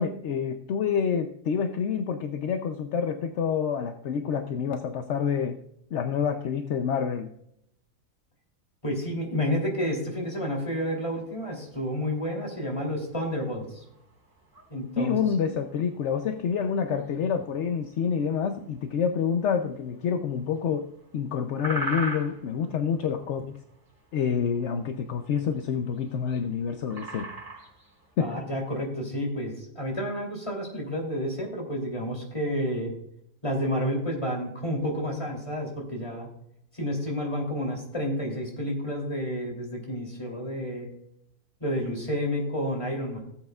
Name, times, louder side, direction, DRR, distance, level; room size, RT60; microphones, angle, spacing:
voice 1, 0.0-5.6 5.9-7.3 15.0-23.6 24.1-27.3 28.2-28.4, left 7 dB, 60° left, 7 dB, 0.7 m, -28 dB
voice 2, 8.8-13.8 14.7-15.2 28.2-32.9 33.4-36.3 36.7-40.9 41.6-43.2, equal, 20° left, 0 dB, 2.9 m, -30 dB
sound 1, 11.0-28.1, right 1 dB, 50° right, 4.0 m, -43 dB
17.5 x 7.7 x 2.3 m, 0.76 s
omnidirectional pair, 1.7 m